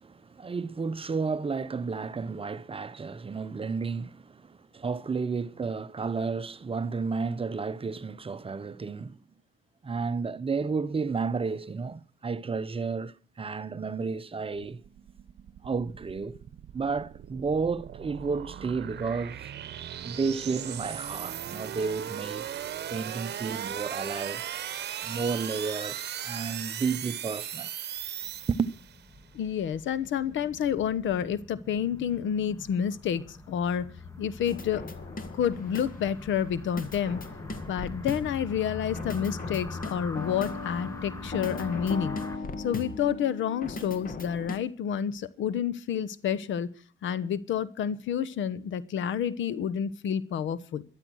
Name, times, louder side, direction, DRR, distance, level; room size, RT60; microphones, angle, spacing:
voice 1, 0.0-9.2 9.8-14.8 15.6-16.4 16.7-19.5 20.0-22.5 22.9-24.4 25.0-27.7 28.5-28.7, right 5 dB, 30° right, 0.8 m, -32 dB
sound 1, 14.7-29.1, right 10 dB, 60° right, 1.0 m, -38 dB
sound 2, 28.2-42.4, left 3 dB, 15° left, 1.4 m, -43 dB
voice 2, 29.3-33.9 34.2-34.8 35.3-37.2 37.7-42.2 42.6-46.7 47.0-50.8, left 8 dB, 75° left, 1.0 m, -29 dB
sound 3, 34.5-36.2 36.8-38.5 38.9-44.6, left 3 dB, 45° left, 2.1 m, -38 dB
13.0 x 12.0 x 6.3 m
cardioid pair, 90°, 20 cm